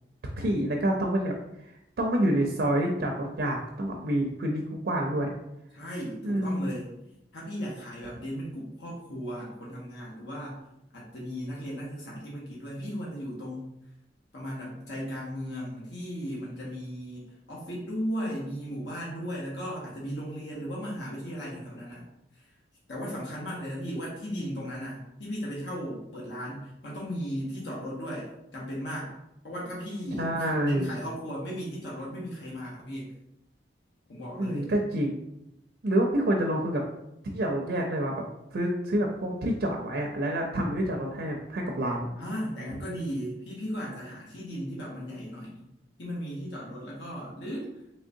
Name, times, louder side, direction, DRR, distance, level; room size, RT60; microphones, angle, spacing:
voice 1, 0.4-5.3 6.2-6.7 30.2-30.9 34.4-35.1 35.8-36.8 37.3-38.1 38.5-42.1, right 1 dB, 60° right, 1 dB, 0.4 m, -28 dB
voice 2, 5.7-6.9 7.3-10.6 10.9-13.7 14.3-22.0 22.3-22.5 22.9-29.2 29.4-33.1 34.1-34.7 42.2-45.7 46.0-47.7, equal, 75° left, -4 dB, 0.9 m, -36 dB
3.5 x 3.2 x 2.6 m, 0.84 s
head